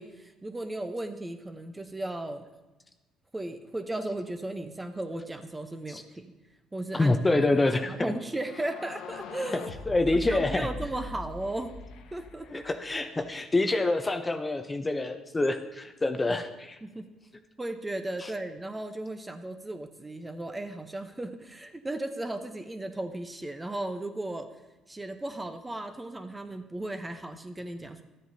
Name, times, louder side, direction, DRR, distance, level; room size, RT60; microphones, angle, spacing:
voice 1, 0.0-2.5 3.3-6.3 6.7-9.7 10.1-11.7 12.1-12.7 16.3-16.4 16.8-17.1 17.6-24.5 24.9-28.0, right 1 dB, 15° right, 7 dB, 0.8 m, -36 dB
voice 2, 6.9-8.1 9.9-10.7 12.5-16.8 18.2-18.3, left 2 dB, 20° left, 7 dB, 0.7 m, -26 dB
sound 1, 8.3-13.1, left 3 dB, 75° left, 0.7 m, -41 dB
13.0 x 7.6 x 2.7 m, 1.1 s
supercardioid pair, 75°, 0 cm